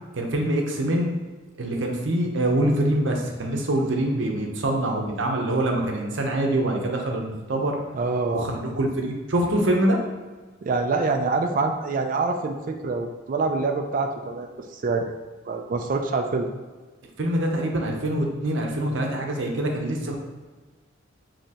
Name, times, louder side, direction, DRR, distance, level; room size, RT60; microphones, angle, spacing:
voice 1, 0.1-1.1 1.6-7.8 8.3-10.0 17.2-20.2, right 1 dB, 70° right, 1 dB, 0.7 m, -24 dB
voice 2, 7.9-8.5 10.6-15.1 15.5-16.5, right 3 dB, 45° right, 4 dB, 0.3 m, -25 dB
5.2 x 2.8 x 2.9 m, 1.4 s
head